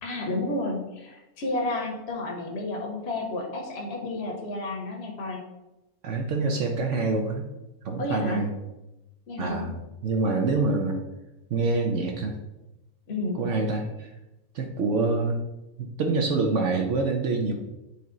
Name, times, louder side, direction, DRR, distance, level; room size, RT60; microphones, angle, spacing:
voice 1, 0.0-5.4 8.0-8.4 9.3-9.7 13.1-13.4, left 2 dB, 50° left, 1 dB, 1.1 m, -31 dB
voice 2, 6.0-7.4 7.8-8.5 9.4-9.7 10.0-11.0 11.5-12.4 13.3-14.1 14.5-15.4 15.8-17.5, right 3 dB, 60° right, 2 dB, 0.9 m, -26 dB
8.4 x 3.0 x 3.8 m, 0.96 s
omnidirectional pair, 1.6 m